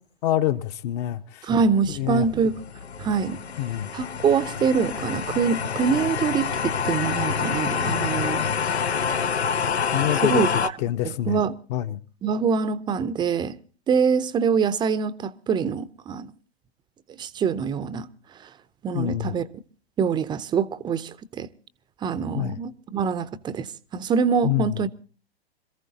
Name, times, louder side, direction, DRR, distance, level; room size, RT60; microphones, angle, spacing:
voice 1, 0.2-1.5 2.0-2.3 3.6-3.9 9.9-10.4 10.8-11.4 11.7-12.0 18.9-19.3 22.3-22.6 24.4-24.9, left 13 dB, 40° left, 0.9 m, -26 dB
voice 2, 1.4-2.6 3.0-3.4 3.9-8.5 10.2-10.7 11.0-11.6 12.2-13.6 13.9-16.3 17.1-18.1 18.4-18.5 18.8-19.5 20.0-21.5 22.0-24.9, right 6 dB, 15° right, 0.6 m, -24 dB
sound 1, 1.9-10.7, left 6 dB, 85° left, 0.9 m, -27 dB
26.5 x 14.5 x 2.8 m
hypercardioid pair, 115°, 32 cm